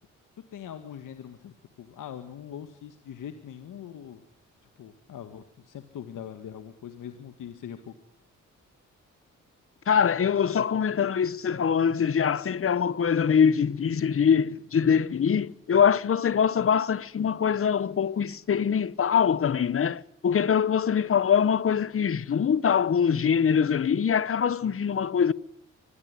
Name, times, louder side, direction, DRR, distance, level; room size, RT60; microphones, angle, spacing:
voice 1, 0.5-4.2 4.8-7.9, left 9 dB, 70° left, 1.9 m, -42 dB
voice 2, 9.9-25.3, left 7 dB, 45° left, 1.0 m, -23 dB
24.0 x 20.5 x 9.8 m
cardioid pair, 65°, 33 cm